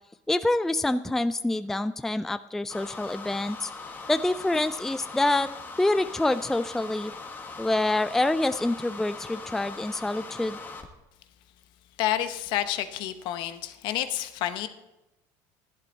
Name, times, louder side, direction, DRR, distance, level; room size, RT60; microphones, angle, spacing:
voice 1, 0.3-3.7 4.1-5.5 5.8-7.1 7.6-10.6, left 2 dB, 5° left, 12 dB, 0.3 m, -26 dB
sound 1, 2.7-10.9, left 4 dB, 25° left, 1.4 m, -41 dB
voice 2, 12.0-14.7, left 12 dB, 65° left, 10 dB, 0.9 m, -29 dB
11.5 x 11.0 x 4.1 m, 0.94 s
supercardioid pair, 110°, 9 cm